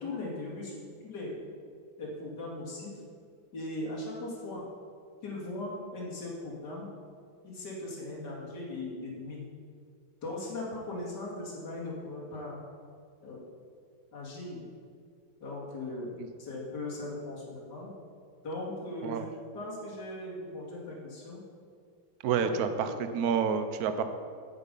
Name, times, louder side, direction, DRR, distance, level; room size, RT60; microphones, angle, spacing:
voice 1, 0.0-1.4 2.0-3.0 3.5-4.6 5.2-6.9 7.4-9.5 10.2-12.6 13.2-13.4 14.1-14.6 15.4-17.9 18.4-19.3 19.5-21.4 22.4-23.0 23.9-24.0, left 2 dB, 50° left, -4 dB, 2.8 m, -39 dB
voice 2, 22.2-24.0, right 6 dB, 80° right, 9 dB, 0.8 m, -29 dB
9.1 x 8.5 x 5.3 m, 2.2 s
omnidirectional pair, 2.4 m